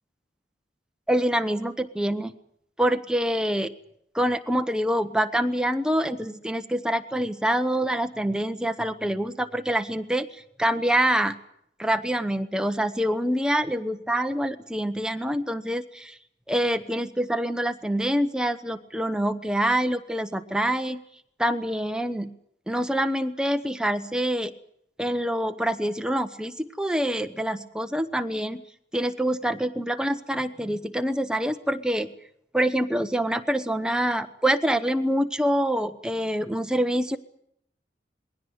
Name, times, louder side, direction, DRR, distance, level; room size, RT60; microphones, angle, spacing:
voice 1, 1.1-2.3 2.8-3.7 4.1-11.3 11.8-16.2 16.5-21.0 21.4-22.3 22.7-24.5 25.0-28.6 28.9-32.1 32.5-37.2, right 1 dB, 5° right, 7 dB, 0.9 m, -26 dB
21.5 x 17.0 x 9.4 m, 0.73 s
head